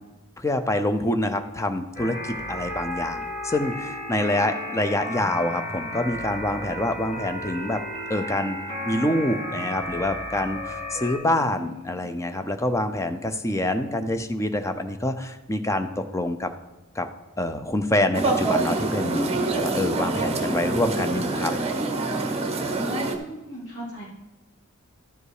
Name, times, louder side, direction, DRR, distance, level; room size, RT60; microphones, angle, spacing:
voice 1, 0.4-7.8 8.1-8.6 8.9-16.5 16.9-17.1 17.4-21.5, left 1 dB, 15° left, 8 dB, 0.6 m, -26 dB
sound 1, 1.9-11.2, left 1 dB, 35° left, 3.4 m, -33 dB
voice 2, 11.2-12.1 22.9-24.0, equal, 55° left, -8 dB, 3.7 m, -39 dB
sound 2, 18.1-23.2, right 3 dB, 30° right, 0.9 m, -25 dB
12.0 x 5.3 x 4.9 m, 1.1 s
head